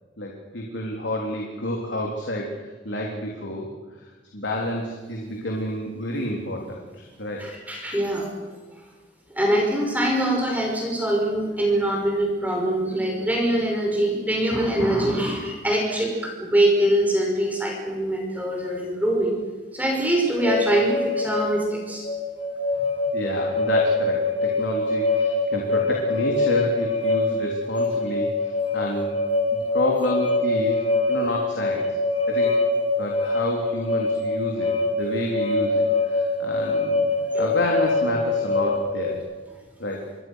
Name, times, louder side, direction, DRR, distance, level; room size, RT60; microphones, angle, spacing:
voice 1, 0.2-3.7 4.3-7.4 23.1-29.1 29.5-30.8 31.1-32.0 32.3-32.5 33.0-37.1 37.4-39.2 39.8-40.0, left 1 dB, 75° left, -1 dB, 3.7 m, -29 dB
voice 2, 7.4-8.3 9.4-19.4 19.7-22.0 37.3-37.5, right 1 dB, 10° right, 0 dB, 5.5 m, -23 dB
sound 1, 20.4-39.1, left 2 dB, 35° left, 3.5 m, -24 dB
28.5 x 22.0 x 6.6 m, 1.3 s
head